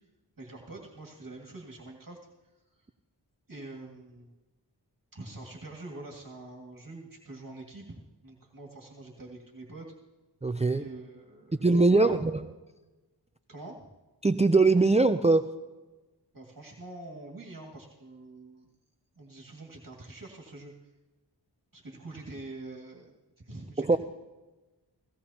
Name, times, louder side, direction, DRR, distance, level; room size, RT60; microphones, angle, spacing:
voice 1, 0.4-2.2 2.8-2.9 3.5-4.3 5.1-9.9 10.7-12.2 13.5-13.9 16.3-18.7 19.2-20.9 21.7-24.0, right 2 dB, 50° right, -1 dB, 2.1 m, -45 dB
voice 2, 10.4-10.8 11.6-12.4 14.2-15.5 23.8-24.0, right 3 dB, 15° right, 10 dB, 0.5 m, -22 dB
17.0 x 17.0 x 2.9 m, 1.1 s
wide cardioid pair, 50°, 42 cm